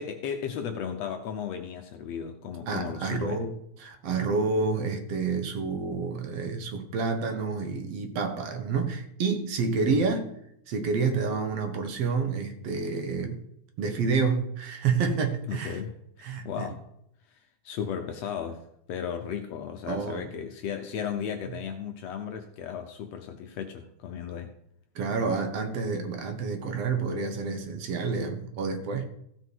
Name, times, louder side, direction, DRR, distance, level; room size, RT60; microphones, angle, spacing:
voice 1, 0.0-3.5 9.9-10.0 15.5-16.9 17.3-17.4 17.6-18.6 18.9-24.5, left 7 dB, 70° left, 1.7 m, -35 dB
voice 2, 2.7-3.5 3.8-10.3 10.7-13.4 13.8-15.8 16.2-16.7 19.9-20.3 25.0-29.1, right 4 dB, 60° right, 2.0 m, -29 dB
15.5 x 6.1 x 4.6 m
omnidirectional pair, 3.5 m